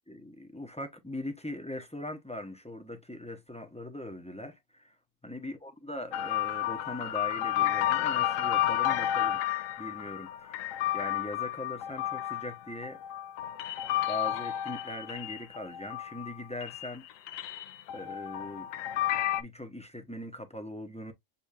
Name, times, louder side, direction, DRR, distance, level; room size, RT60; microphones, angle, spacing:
voice 1, 0.1-5.0 5.2-9.4 9.8-13.0 14.1-17.0 17.9-18.7 19.4-21.1, left 1 dB, 5° left, 0.6 m, -40 dB
sound 1, 6.1-16.3 16.6-19.4, left 12 dB, 85° left, 1.0 m, -31 dB
6.9 x 2.3 x 2.6 m
omnidirectional pair, 1.3 m